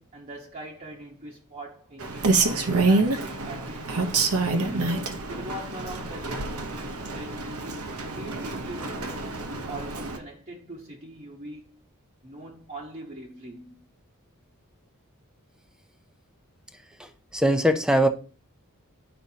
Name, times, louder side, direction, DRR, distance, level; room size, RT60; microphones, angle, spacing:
voice 1, 0.0-7.8 8.2-9.4 9.7-11.8 12.2-13.9, right 1 dB, 35° right, 1.0 m, -42 dB
Rain, 2.0-10.2, right 3 dB, 75° right, 0.9 m, -27 dB
voice 2, 17.0-18.1, equal, 5° right, 0.5 m, -22 dB
10.0 x 5.2 x 2.8 m
head